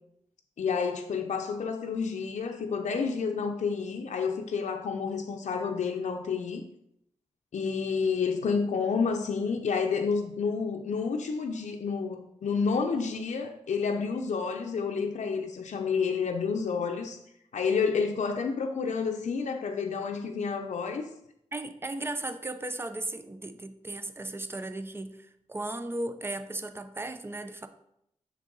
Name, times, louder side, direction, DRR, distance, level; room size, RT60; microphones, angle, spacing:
voice 1, 0.6-6.6 7.5-17.2 17.5-21.1, left 5 dB, 80° left, 0.6 m, -29 dB
voice 2, 21.5-27.7, right 2 dB, 20° right, 0.6 m, -36 dB
6.4 x 6.0 x 3.9 m
wide cardioid pair, 100°, 12 cm